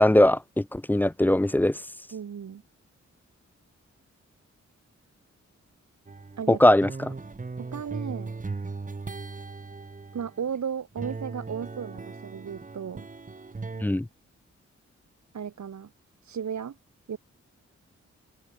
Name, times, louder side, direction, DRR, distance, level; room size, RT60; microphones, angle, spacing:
voice 1, 0.0-1.8 6.5-7.1 13.8-14.1, left 1 dB, 5° left, 0.3 m, -20 dB
voice 2, 2.1-2.6 6.4-6.6 7.7-8.3 10.1-13.1 15.3-15.9 16.2-16.8 17.1-17.2, right 7 dB, 70° right, 1.5 m, -34 dB
sound 1, 6.1-10.6 10.9-13.9, right 3 dB, 25° right, 1.0 m, -38 dB
open air
cardioid pair, 50°, 30 cm